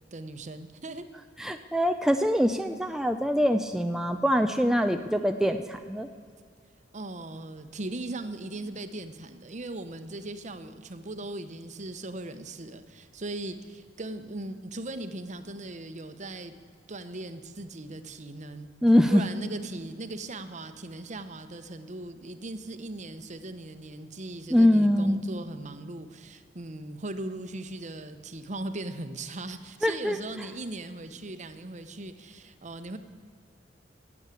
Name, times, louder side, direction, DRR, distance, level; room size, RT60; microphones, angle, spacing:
voice 1, 0.1-1.1 6.9-16.5 16.9-18.7 19.1-33.0, right 2 dB, 40° right, 9 dB, 0.9 m, -39 dB
voice 2, 1.4-6.1 18.8-19.2 24.5-25.2 29.8-30.2, equal, 5° right, 6 dB, 0.4 m, -23 dB
17.5 x 7.2 x 8.3 m, 2.1 s
head